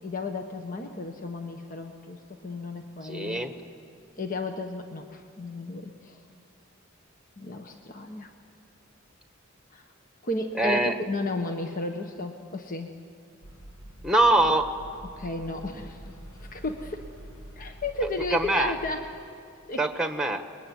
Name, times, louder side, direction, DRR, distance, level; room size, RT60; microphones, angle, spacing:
voice 1, 0.0-3.4 4.2-6.2 7.4-8.3 9.7-9.8 10.2-10.8 11.1-12.9 15.2-16.1 16.4-17.0 17.6-19.2 19.7-19.8, left 2 dB, 40° left, 4 dB, 1.3 m, -33 dB
voice 2, 3.0-3.5 10.6-10.9 14.0-14.7 18.3-18.7 19.8-20.4, right 2 dB, 5° right, 7 dB, 1.4 m, -23 dB
sound 1, 13.4-19.0, right 1 dB, 80° left, 6.9 m, -45 dB
29.0 x 21.5 x 9.4 m, 2.4 s
head